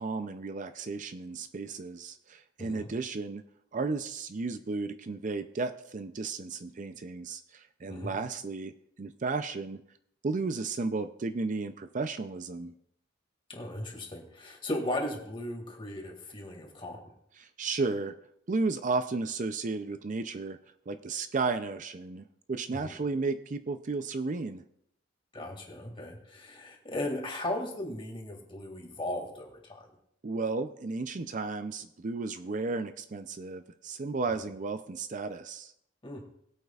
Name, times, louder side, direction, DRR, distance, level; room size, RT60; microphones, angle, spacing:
voice 1, 0.0-3.4 3.7-8.7 9.0-9.8 10.2-12.7 17.4-18.1 18.5-20.6 20.9-24.6 30.2-35.7, right 3 dB, 40° right, 9 dB, 0.5 m, -33 dB
voice 2, 2.6-2.9 7.9-8.2 13.5-17.0 22.7-22.9 25.3-29.8 36.0-36.2, left 1 dB, 25° left, 1 dB, 2.1 m, -37 dB
21.5 x 8.2 x 2.4 m, 0.71 s
head